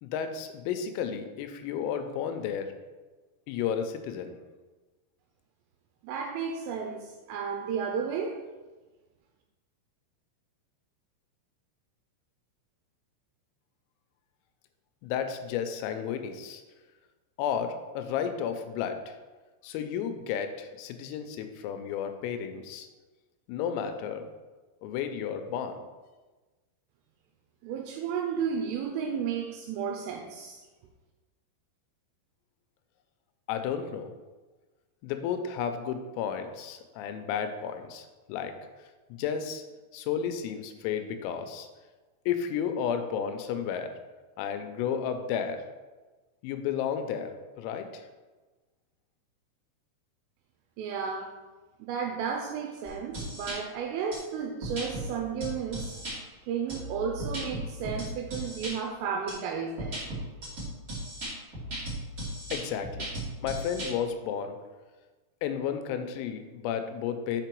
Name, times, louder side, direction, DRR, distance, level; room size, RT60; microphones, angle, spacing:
voice 1, 0.0-2.7 3.5-4.4 15.0-16.6 17.4-19.2 19.6-22.9 23.5-24.2 24.8-25.8 33.5-34.1 35.0-38.5 39.1-39.6 39.9-41.7 42.3-43.9 44.4-45.6 46.4-48.0 62.5-63.1 63.4-64.6 65.4-67.4, left 8 dB, 85° left, 7 dB, 3.3 m, -32 dB
voice 2, 6.0-8.4 27.6-30.6 50.8-51.3 51.8-56.0 56.4-60.0, right 6 dB, 80° right, 2 dB, 3.1 m, -33 dB
sound 1, 52.8-53.6 54.1-54.2 54.6-55.0 55.4-56.1 56.7-58.7 59.3-59.4 59.8-63.9, right 1 dB, 40° right, 1.2 m, -36 dB
6.8 x 5.3 x 4.5 m, 1.2 s
omnidirectional pair, 6.0 m